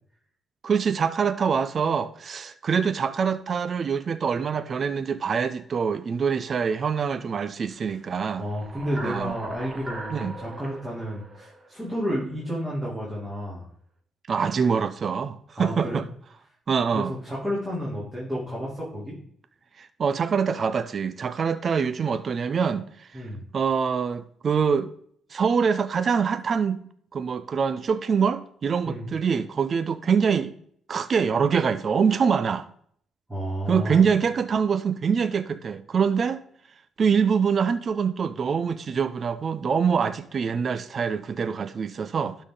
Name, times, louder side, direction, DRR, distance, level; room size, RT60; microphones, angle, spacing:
voice 1, 0.6-8.4 9.0-9.3 10.1-10.3 14.3-16.0 16.7-17.1 19.8-23.2 23.5-24.9 25.3-26.8 27.1-30.5 30.9-32.7 33.7-36.4 37.0-42.4, right 6 dB, 45° right, 0.5 m, -24 dB
sound 1, 8.3-12.5, right 2 dB, 30° right, 1.4 m, -40 dB
voice 2, 8.4-13.6 15.6-16.0 16.9-19.2 23.1-23.4 28.8-29.0 33.3-34.0, equal, 5° right, 3.1 m, -31 dB
12.0 x 4.1 x 3.8 m
cardioid pair, 90°, 0 cm